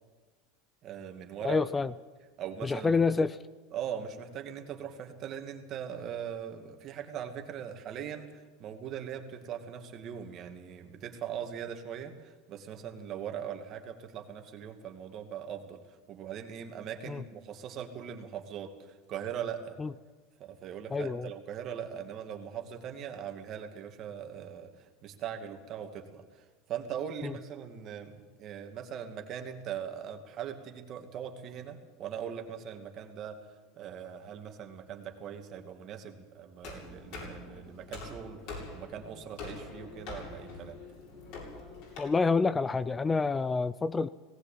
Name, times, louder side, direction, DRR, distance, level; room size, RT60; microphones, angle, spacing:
voice 1, 0.8-1.6 2.4-3.0 3.7-19.8 20.4-40.8, right 8 dB, 45° right, 5 dB, 2.4 m, -40 dB
voice 2, 1.4-1.9 2.6-3.4 17.1-17.2 19.8-19.9 20.9-21.3 27.2-27.3 42.0-44.1, left 4 dB, 20° left, 16 dB, 0.5 m, -28 dB
sound 1, 36.6-42.0, left 3 dB, 65° left, 7.8 m, -44 dB
18.5 x 16.5 x 8.7 m, 1.3 s
supercardioid pair, 110°, 0 cm